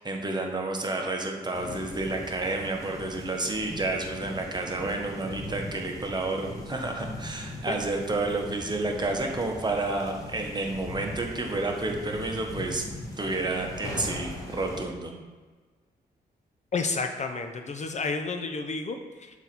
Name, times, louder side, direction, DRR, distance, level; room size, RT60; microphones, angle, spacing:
voice 1, 0.0-12.8 13.2-15.1, right 2 dB, 25° right, 2 dB, 1.1 m, -30 dB
sound 1, 1.5-14.9, left 1 dB, 20° left, 1.5 m, -40 dB
voice 2, 16.7-19.4, left 4 dB, 40° left, 6 dB, 0.6 m, -31 dB
6.9 x 4.0 x 4.4 m, 1.4 s
cardioid pair, 80°, 17 cm